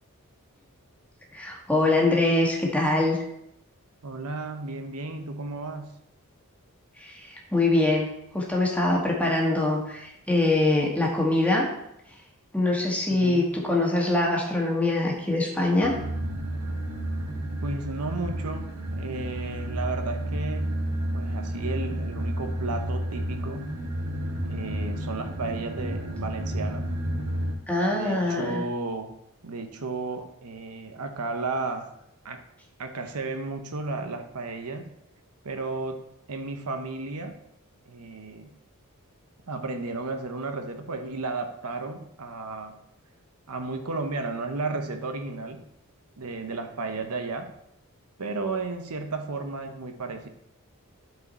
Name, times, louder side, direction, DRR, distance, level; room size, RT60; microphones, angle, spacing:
voice 1, 1.3-3.2 7.0-8.1 8.3-11.7 12.5-15.9 27.7-28.6, left 2 dB, 5° left, -2 dB, 1.8 m, -23 dB
voice 2, 4.0-5.9 13.1-13.5 17.6-20.8 21.1-23.7 24.4-26.9 27.9-29.1 29.4-31.9 32.2-32.4 32.8-34.9 35.4-36.0 36.3-37.4 37.9-38.5 39.5-42.8 43.5-45.6 46.2-47.5 48.2-50.3, right 3 dB, 85° right, 6 dB, 0.9 m, -33 dB
sound 1, 15.8-27.5, right 1 dB, 70° right, 1.8 m, -31 dB
11.5 x 4.9 x 4.2 m, 0.79 s
head